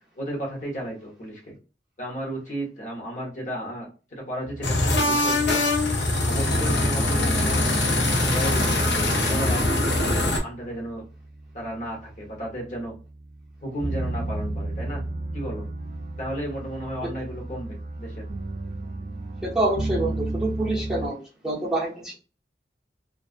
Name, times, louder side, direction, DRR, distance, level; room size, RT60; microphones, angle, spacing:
voice 1, 0.1-1.6 2.0-5.6 6.3-7.7 8.1-11.0 11.5-12.9 13.6-15.0 15.3-15.6 16.2-18.3, equal, 45° left, -1 dB, 1.0 m, -33 dB
sound 1, 4.6-10.4, left 2 dB, 85° left, 0.8 m, -22 dB
sound 2, 10.5-21.1, right 2 dB, 40° right, 0.4 m, -35 dB
voice 2, 19.4-21.2 21.4-22.1, right 2 dB, 5° right, -7 dB, 0.8 m, -26 dB
2.3 x 2.3 x 2.3 m, 0.34 s
head